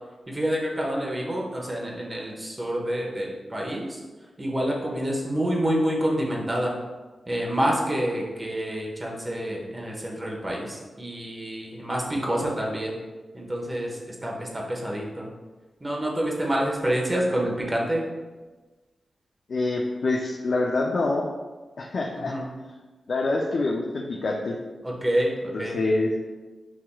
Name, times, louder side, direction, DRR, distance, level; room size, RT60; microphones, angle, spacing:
voice 1, 0.3-4.0 4.4-6.7 7.3-13.0 13.3-15.3 15.8-18.0 22.2-22.5 24.8-25.8, right 1 dB, 30° right, -2 dB, 1.2 m, -27 dB
voice 2, 19.5-21.2 21.8-22.3 23.1-24.6 25.5-26.1, left 2 dB, 70° left, -1 dB, 0.5 m, -26 dB
7.3 x 2.8 x 2.3 m, 1.3 s
supercardioid pair, 40°, 0 cm